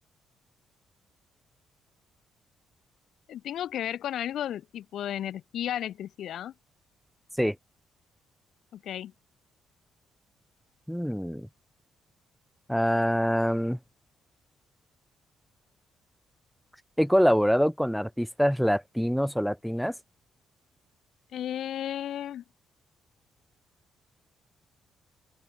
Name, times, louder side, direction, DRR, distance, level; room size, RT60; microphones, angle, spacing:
voice 1, 3.3-6.5 8.7-9.1 21.3-22.4, left 11 dB, 70° left, 0.8 m, -34 dB
voice 2, 10.9-11.5 12.7-13.8 17.0-19.9, equal, ahead, 0.9 m, -25 dB
open air
cardioid pair, 90°, 0 cm